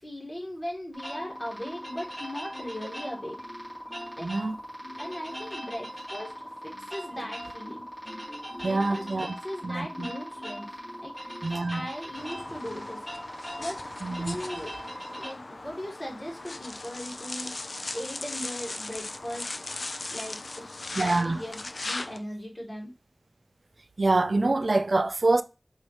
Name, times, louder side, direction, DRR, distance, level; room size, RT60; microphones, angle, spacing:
voice 1, 0.0-3.4 4.2-4.5 5.0-7.9 8.6-10.7 11.0-11.1 11.7-13.1 13.6-14.8 15.2-17.5 17.9-19.5 20.1-20.4 20.9-22.9, equal, 25° left, 1.7 m, -38 dB
sound 1, 0.9-15.3, equal, 10° left, 1.9 m, -40 dB
Marimba xylophone, 1.1-2.1 2.5-4.3 4.8-5.7 6.2-11.7 12.2-13.0 13.6-13.8, left 1 dB, 20° right, 1.9 m, -48 dB
voice 2, 4.2-4.5 8.6-9.3 9.6-10.1 11.4-11.8 14.0-14.4 21.0-21.4 24.0-25.4, right 2 dB, 75° right, 0.3 m, -25 dB
sound 2, 12.2-22.2, left 2 dB, 85° left, 0.3 m, -38 dB
4.6 x 2.6 x 3.1 m
wide cardioid pair, 55°, 0 cm